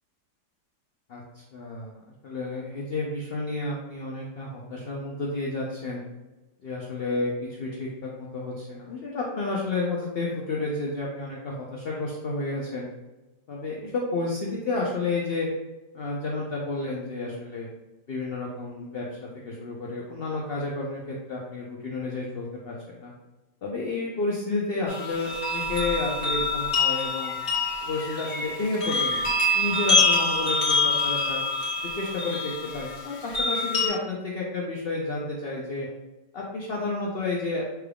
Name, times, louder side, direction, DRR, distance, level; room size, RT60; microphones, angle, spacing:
voice 1, 1.5-2.0 2.2-6.0 6.6-12.9 13.5-15.5 15.9-17.7 18.1-23.1 23.6-27.4 27.8-31.4 31.9-35.9 36.3-37.7, left 2 dB, 60° left, -3 dB, 0.6 m, -31 dB
sound 1, 24.9-33.9, left 3 dB, 35° left, 1.5 m, -26 dB
6.0 x 3.4 x 2.3 m, 1.1 s
omnidirectional pair, 1.8 m